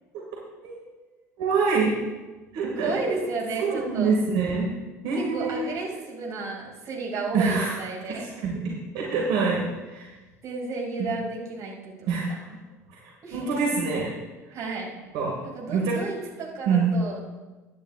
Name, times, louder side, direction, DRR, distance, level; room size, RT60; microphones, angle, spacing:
voice 1, 1.4-1.9 2.5-2.9 3.6-4.7 5.0-5.7 7.3-7.8 8.1-8.5 8.9-10.2 11.0-11.1 12.1-12.5 12.9-14.1 15.1-15.4 15.7-16.0 16.7-16.9, right 5 dB, 55° right, -3 dB, 2.1 m, -25 dB
voice 2, 2.8-4.1 5.1-8.3 10.4-12.2 13.2-13.6 14.5-14.9 15.4-17.2, right 3 dB, 40° right, -1 dB, 2.6 m, -32 dB
15.5 x 10.0 x 2.4 m, 1.2 s
figure-of-eight pair, 65°, 9 cm